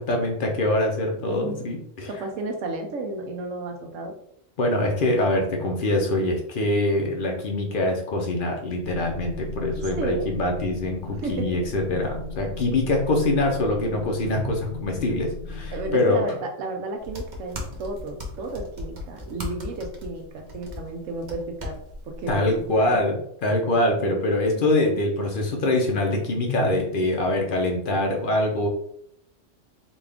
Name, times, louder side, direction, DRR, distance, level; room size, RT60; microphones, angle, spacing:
voice 1, 0.1-2.1 4.6-16.2 22.3-28.7, left 1 dB, 50° left, 2 dB, 0.8 m, -24 dB
voice 2, 1.2-1.7 2.1-4.1 9.9-10.3 11.2-11.6 15.7-21.7 22.0-23.0 24.5-24.6, right 2 dB, 80° right, 3 dB, 1.1 m, -32 dB
sound 1, 8.8-15.9, left 3 dB, 80° left, 1.5 m, -36 dB
sound 2, 17.0-23.0, left 2 dB, 40° right, 0.8 m, -37 dB
4.1 x 2.4 x 3.4 m, 0.71 s
omnidirectional pair, 1.3 m